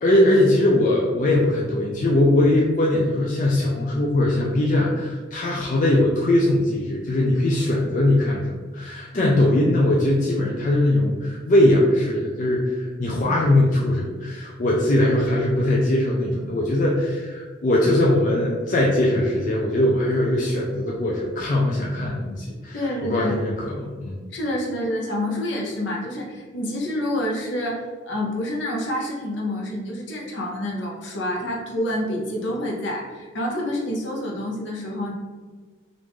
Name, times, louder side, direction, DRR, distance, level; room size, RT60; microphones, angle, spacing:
voice 1, 0.0-24.2, left 1 dB, 40° left, -3 dB, 0.4 m, -21 dB
voice 2, 22.7-23.4 24.3-35.1, left 1 dB, 70° left, -1 dB, 0.8 m, -28 dB
3.5 x 2.5 x 3.0 m, 1.4 s
head